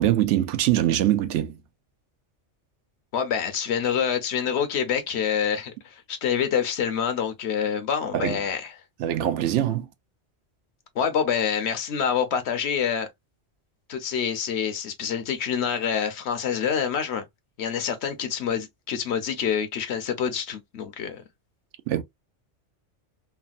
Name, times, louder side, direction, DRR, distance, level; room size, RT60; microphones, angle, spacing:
voice 1, 0.0-1.6 8.1-8.4 9.0-9.9 21.9-22.0, right 12 dB, 85° right, 0.9 m, -23 dB
voice 2, 3.1-8.7 11.0-13.1 13.9-17.2 17.6-21.2, left 7 dB, 70° left, 1.0 m, -26 dB
3.2 x 2.2 x 2.4 m
omnidirectional pair, 1.2 m